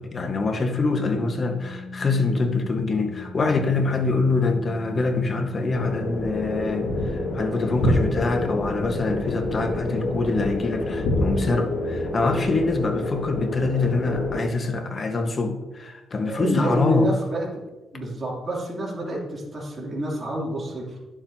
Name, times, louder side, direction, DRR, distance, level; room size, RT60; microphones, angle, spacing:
voice 1, 0.0-17.2, left 3 dB, 40° left, 5 dB, 1.2 m, -25 dB
Organ, 0.7-11.5, left 2 dB, 15° left, 1.0 m, -40 dB
sound 1, 5.7-14.4, left 2 dB, 85° left, 2.0 m, -27 dB
voice 2, 16.2-17.6 17.9-21.0, equal, 30° right, -4 dB, 2.8 m, -28 dB
11.0 x 7.4 x 2.8 m, 1.1 s
cardioid pair, 100°, 0 cm